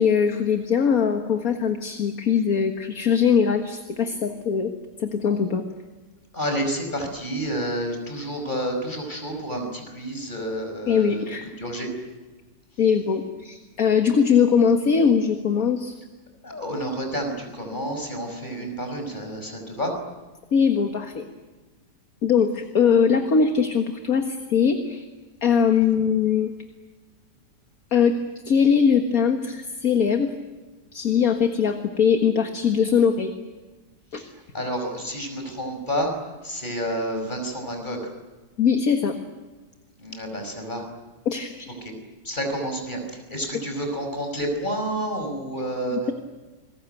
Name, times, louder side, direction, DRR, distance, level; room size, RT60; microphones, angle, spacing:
voice 1, 0.0-4.7 5.0-5.6 10.9-11.5 12.8-15.9 20.5-21.2 22.2-25.0 25.4-26.5 27.9-28.2 28.5-30.3 30.9-33.3 34.1-34.2 38.6-39.2 41.3-41.7 45.9-46.1, left 6 dB, 55° left, 6 dB, 2.0 m, -21 dB
voice 2, 6.3-11.2 11.6-11.9 16.4-19.9 34.2-34.3 34.5-36.1 36.4-38.0 40.0-40.8 42.2-43.0 43.3-46.0, equal, 25° left, 4 dB, 5.6 m, -29 dB
28.5 x 21.5 x 9.2 m, 1.2 s
omnidirectional pair, 1.9 m